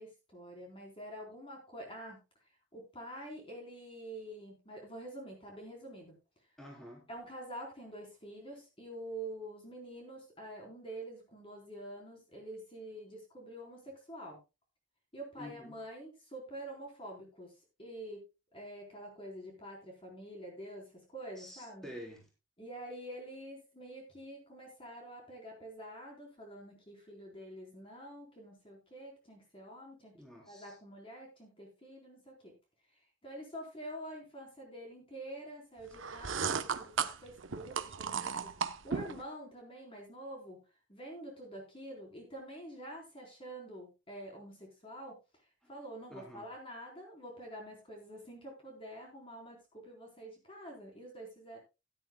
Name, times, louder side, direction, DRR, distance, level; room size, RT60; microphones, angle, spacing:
voice 1, 0.0-2.2 2.7-6.1 7.1-14.4 15.1-17.5 17.8-18.2 18.5-21.9 22.6-30.2 30.5-32.5 33.2-40.6 40.9-45.2 45.7-51.6, right 1 dB, 30° left, 4.0 m, -47 dB
voice 2, 6.6-7.1 15.4-15.8 21.4-22.3 30.1-30.7 45.6-45.7 46.1-46.5, equal, 5° left, 3.7 m, -49 dB
sound 1, 35.9-39.2, right 6 dB, 85° right, 0.9 m, -35 dB
16.5 x 11.0 x 2.2 m
head